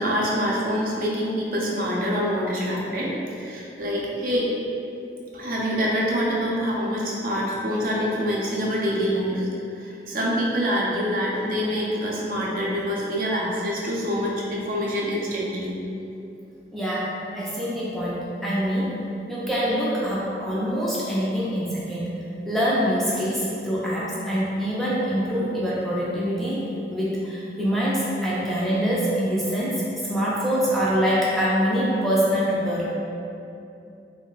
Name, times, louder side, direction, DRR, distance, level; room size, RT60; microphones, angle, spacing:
voice 1, 0.0-4.5 5.3-9.5 9.8-15.7, equal, 50° right, -4 dB, 0.5 m, -25 dB
voice 2, 16.7-19.0 19.3-22.1 22.5-32.9, equal, ahead, -8 dB, 0.3 m, -25 dB
3.1 x 2.1 x 3.7 m, 2.7 s
head